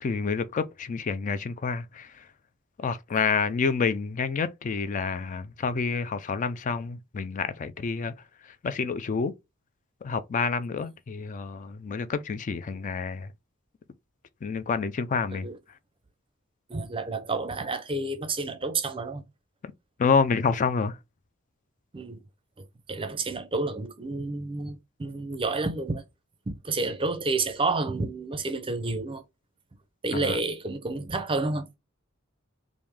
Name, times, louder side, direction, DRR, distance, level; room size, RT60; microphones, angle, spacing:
voice 1, 0.0-2.1 2.8-8.1 8.6-9.3 10.0-13.3 14.4-15.5 20.0-21.0 30.1-30.4, left 5 dB, 35° left, 0.3 m, -28 dB
voice 2, 16.7-19.2 21.9-22.2 22.9-26.0 26.5-29.2 30.0-31.7, right 3 dB, 25° right, 0.6 m, -30 dB
3.5 x 2.6 x 3.2 m
head